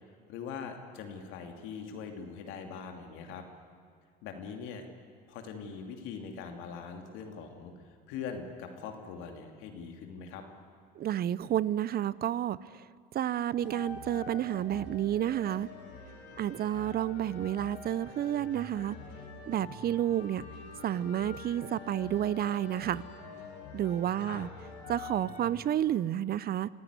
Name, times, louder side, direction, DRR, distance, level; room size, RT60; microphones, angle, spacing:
voice 1, 0.3-3.4 4.2-4.9 5.3-10.4 24.2-24.5, left 6 dB, 75° left, 4 dB, 2.7 m, -42 dB
voice 2, 11.0-12.9 13.1-15.7 16.4-19.0 19.5-20.4 20.8-23.0 23.7-24.5 24.9-26.7, right 11 dB, 50° right, 20 dB, 0.7 m, -30 dB
sound 1, 13.6-25.5, left 4 dB, 90° left, 4.9 m, -46 dB
27.0 x 15.0 x 9.6 m, 2.2 s
supercardioid pair, 75°, 21 cm